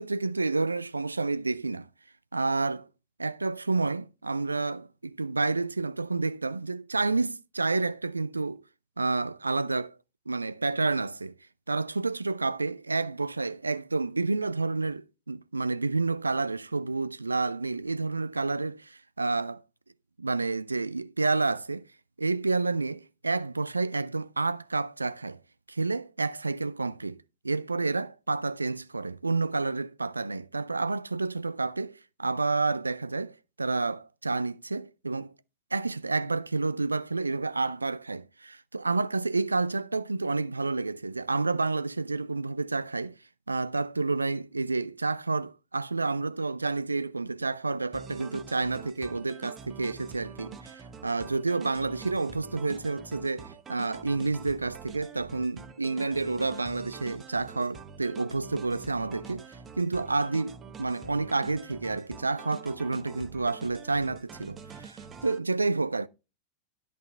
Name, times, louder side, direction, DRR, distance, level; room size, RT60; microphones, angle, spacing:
voice 1, 0.0-1.9 2.3-2.9 3.2-8.6 9.0-9.9 10.3-11.3 11.7-19.6 20.2-21.9 22.2-25.4 25.7-35.3 35.7-43.1 43.5-66.1, right 3 dB, 80° right, 0.4 m, -29 dB
sound 1, 47.9-65.4, right 5 dB, 25° right, 1.1 m, -46 dB
11.0 x 5.5 x 4.3 m
figure-of-eight pair, 90°, 0 cm